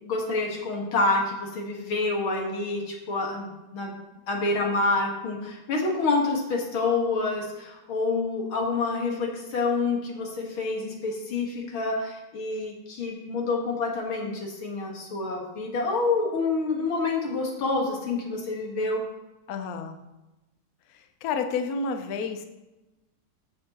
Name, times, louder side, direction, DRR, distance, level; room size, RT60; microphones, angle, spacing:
voice 1, 0.0-3.9 4.3-19.0, left 3 dB, 85° left, 0 dB, 2.5 m, -27 dB
voice 2, 19.5-20.0 20.9-22.4, left 5 dB, 60° left, 6 dB, 1.0 m, -30 dB
13.5 x 6.9 x 3.0 m, 1.0 s
omnidirectional pair, 2.2 m